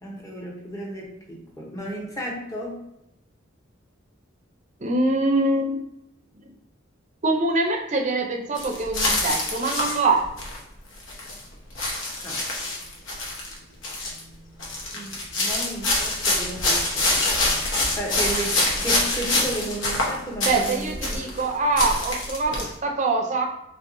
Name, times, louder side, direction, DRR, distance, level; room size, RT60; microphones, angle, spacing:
voice 1, 0.0-2.8 12.2-12.4 14.9-17.6 17.9-21.2, right 1 dB, 15° left, -2 dB, 0.9 m, -34 dB
voice 2, 4.8-5.8 7.2-10.3 20.4-23.5, right 3 dB, 40° right, 3 dB, 0.5 m, -24 dB
sound 1, 8.6-10.6 11.0-11.4 11.7-13.6 13.8-14.2 14.6-21.5 21.7-22.7, left 2 dB, 80° left, 1.0 m, -25 dB
4.5 x 3.2 x 2.6 m, 0.85 s
head